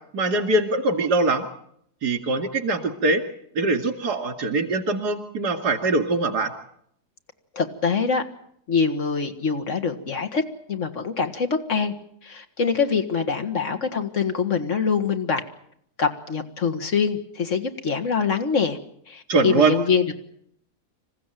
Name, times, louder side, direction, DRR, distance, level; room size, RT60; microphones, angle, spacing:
voice 1, 0.1-1.5 2.0-3.2 3.6-6.5 19.3-19.8, right 2 dB, 85° right, 6 dB, 2.9 m, -22 dB
voice 2, 7.5-8.3 8.7-10.4 10.7-11.9 12.2-15.4 16.0-18.8 19.1-20.1, left 5 dB, 50° left, 6 dB, 2.1 m, -24 dB
27.0 x 15.5 x 9.1 m, 0.72 s
omnidirectional pair, 1.7 m